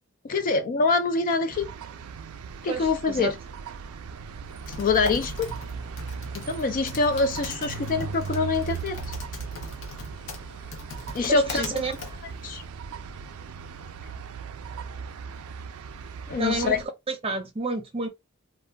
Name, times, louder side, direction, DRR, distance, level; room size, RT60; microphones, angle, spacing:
voice 1, 0.2-1.7 2.6-3.3 4.8-5.5 6.3-9.0 11.1-11.6 12.4-12.6 16.3-16.8, left 4 dB, 40° left, 0.3 m, -25 dB
sound 1, 1.5-16.9, right 6 dB, 80° right, 0.4 m, -38 dB
voice 2, 2.6-3.4 11.3-11.9 16.4-18.1, right 3 dB, 25° right, 0.6 m, -30 dB
Typing, 4.5-12.7, left 4 dB, 60° left, 0.7 m, -41 dB
2.4 x 2.2 x 3.2 m
head